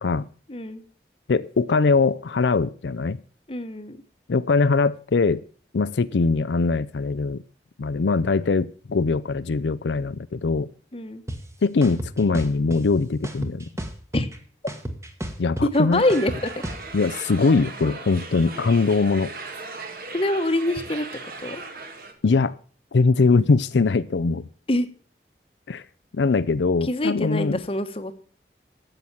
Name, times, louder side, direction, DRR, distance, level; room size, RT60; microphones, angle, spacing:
voice 1, 0.5-0.8 3.5-4.0 10.9-11.2 14.1-14.3 15.6-16.5 20.1-21.1 21.4-21.6 24.7-24.9 26.8-28.1, left 1 dB, 30° left, 10 dB, 1.1 m, -24 dB
voice 2, 1.3-3.2 4.3-5.4 5.7-7.4 7.8-10.7 11.6-13.7 15.4-16.0 16.9-19.3 22.2-22.6 22.9-24.5 25.7-25.8 26.1-27.6, left 4 dB, 85° left, 14 dB, 0.5 m, -21 dB
sound 1, 11.3-11.4 11.8-12.8 13.2-14.4 14.7-16.8, right 1 dB, 15° right, 1.4 m, -32 dB
sound 2, 16.0-22.1, right 3 dB, 55° right, 2.1 m, -37 dB
12.5 x 8.0 x 7.1 m, 0.42 s
head